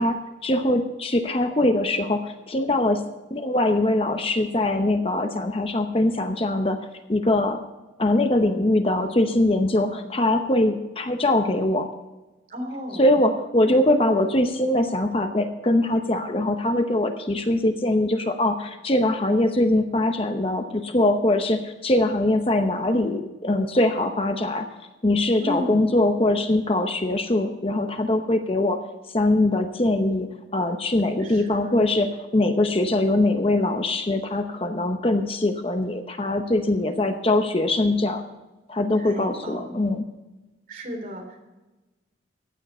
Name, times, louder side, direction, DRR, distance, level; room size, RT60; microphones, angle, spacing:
voice 1, 0.0-3.0 3.3-6.8 7.1-7.6 8.0-11.9 13.0-24.7 25.0-28.8 29.1-38.2 38.7-40.0, left 1 dB, 30° left, 6 dB, 0.8 m, -22 dB
voice 2, 12.5-13.1 25.4-25.9 31.2-31.9 39.0-39.9 40.7-41.5, equal, 45° right, 2 dB, 3.3 m, -34 dB
15.0 x 9.8 x 4.3 m, 1.1 s
head